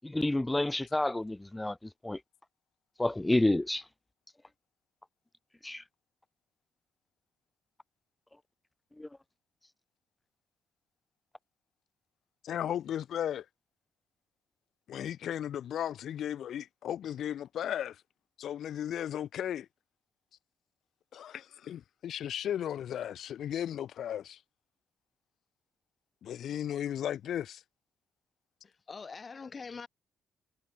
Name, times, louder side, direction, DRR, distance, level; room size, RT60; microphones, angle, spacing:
voice 1, 0.1-1.7 2.0-2.2 3.0-3.8 5.6-5.8 9.0-9.1, left 1 dB, 10° left, 0.7 m, -29 dB
voice 2, 12.4-13.4 14.9-18.0 18.4-19.7 21.1-24.4 26.2-27.6, left 10 dB, 70° left, 3.9 m, -35 dB
voice 3, 28.6-29.9, left 5 dB, 35° left, 1.7 m, -44 dB
cardioid pair, 90°, 0 cm